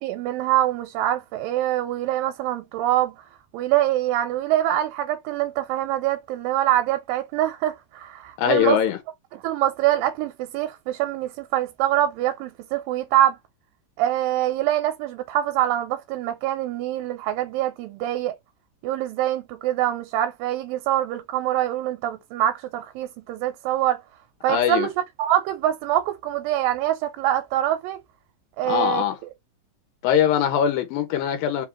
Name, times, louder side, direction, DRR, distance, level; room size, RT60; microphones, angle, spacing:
voice 1, 0.0-3.1 3.5-8.8 9.3-13.4 14.0-18.3 18.8-24.0 24.4-24.9 25.2-28.0 28.6-29.0, right 13 dB, 80° right, 2.3 m, -24 dB
voice 2, 8.4-9.0 24.5-24.9 28.6-29.2 30.0-31.7, left 9 dB, 85° left, 2.5 m, -21 dB
5.4 x 2.4 x 2.9 m
omnidirectional pair, 4.0 m